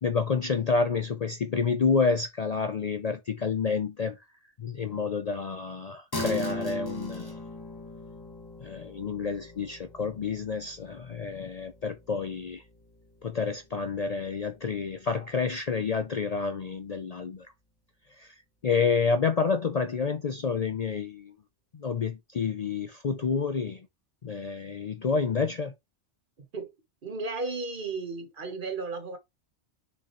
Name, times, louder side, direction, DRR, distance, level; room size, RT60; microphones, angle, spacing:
voice 1, 0.0-4.2 4.6-7.4 8.6-12.6 13.2-17.5 18.2-18.3 18.6-21.3 21.7-23.8 24.2-25.7, left 5 dB, 45° left, 0.5 m, -29 dB
sound 1, 6.1-15.9, left 1 dB, 20° left, 1.4 m, -40 dB
voice 2, 27.0-29.2, right 3 dB, 50° right, 1.4 m, -34 dB
6.7 x 5.0 x 3.0 m
omnidirectional pair, 1.2 m